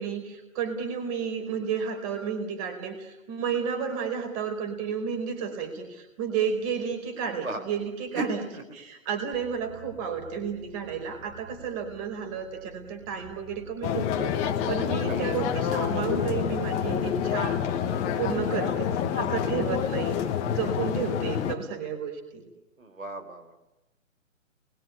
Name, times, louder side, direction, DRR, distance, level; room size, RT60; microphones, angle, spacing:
voice 1, 0.0-8.4 8.7-17.8 18.2-20.2 20.5-22.4, right 7 dB, 25° right, 6 dB, 4.8 m, -32 dB
sound 1, 9.3-18.9, right 3 dB, ahead, 3.3 m, -50 dB
sound 2, 13.8-21.6, left 9 dB, 15° left, 1.7 m, -28 dB
voice 2, 22.8-23.6, right 2 dB, 90° right, 6 dB, 4.3 m, -34 dB
30.0 x 22.5 x 8.6 m, 1.0 s
figure-of-eight pair, 145°, 40 cm